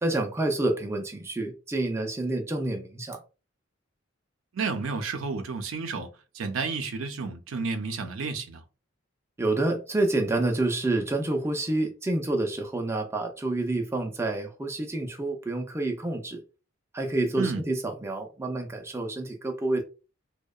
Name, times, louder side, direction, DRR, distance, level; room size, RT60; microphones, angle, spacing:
voice 1, 0.0-3.2 9.4-16.4 16.9-19.8, right 2 dB, 15° right, 0.4 m, -28 dB
voice 2, 4.5-6.1 6.3-8.6 17.4-17.6, right 4 dB, 85° right, 0.5 m, -31 dB
2.7 x 2.1 x 2.3 m
head